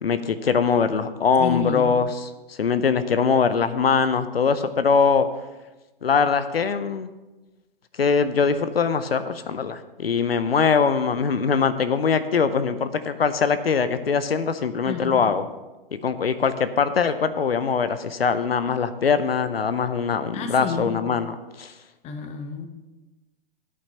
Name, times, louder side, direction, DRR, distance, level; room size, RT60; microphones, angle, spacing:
voice 1, 0.0-5.3 6.0-7.1 8.0-15.5 15.9-21.7, left 5 dB, 90° left, 12 dB, 0.7 m, -22 dB
voice 2, 1.4-1.8 14.8-15.2 20.3-21.0 22.0-22.7, left 6 dB, 20° left, 5 dB, 0.9 m, -30 dB
13.5 x 8.6 x 2.9 m, 1.1 s
hypercardioid pair, 115°, 29 cm